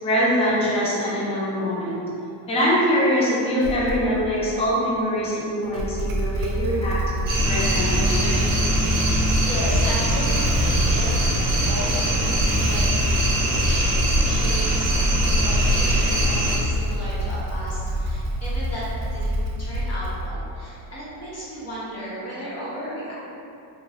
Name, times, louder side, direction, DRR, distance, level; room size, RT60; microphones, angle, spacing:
voice 1, 0.0-2.0 2.5-7.0 7.4-8.5, equal, 15° left, -7 dB, 0.5 m, -23 dB
Motorcycle / Engine starting, 3.6-4.3 5.6-20.5, equal, 85° right, 0.6 m, -26 dB
sound 1, 7.3-16.6, equal, 60° right, 0.9 m, -22 dB
voice 2, 9.1-11.1 11.6-18.8 19.1-23.1, equal, 30° left, -10 dB, 1.2 m, -35 dB
3.0 x 2.5 x 2.8 m, 2.7 s
cardioid pair, 120°, 49 cm